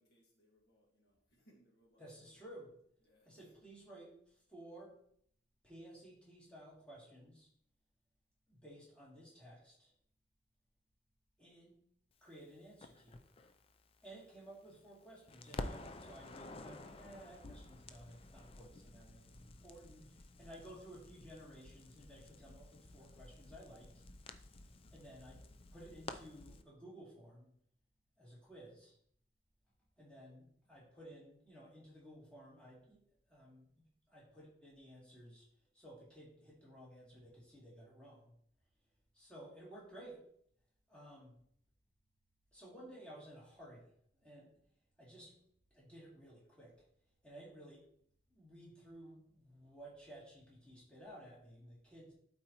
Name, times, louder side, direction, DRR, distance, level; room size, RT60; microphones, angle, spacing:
voice 1, 0.0-2.4 3.0-3.5, equal, 60° left, -2 dB, 1.7 m, -71 dB
voice 2, 2.0-2.7 3.2-4.9 5.6-7.5 8.5-9.9 11.4-11.8 12.2-13.2 14.0-24.0 24.3-24.5 24.9-25.4 25.7-27.5 28.2-29.0 30.0-33.0 33.3-33.7 34.1-35.5 35.7-38.3 39.1-40.2 40.9-41.4 42.5-43.9 44.1-44.5 45.0-45.3 45.7-46.8 47.2-47.8 48.3-52.1, right 1 dB, 5° left, -7 dB, 2.7 m, -55 dB
Crackle, 12.8-15.0 15.3-26.6, left 2 dB, 30° left, 0.5 m, -51 dB
12.5 x 4.4 x 3.0 m, 0.66 s
head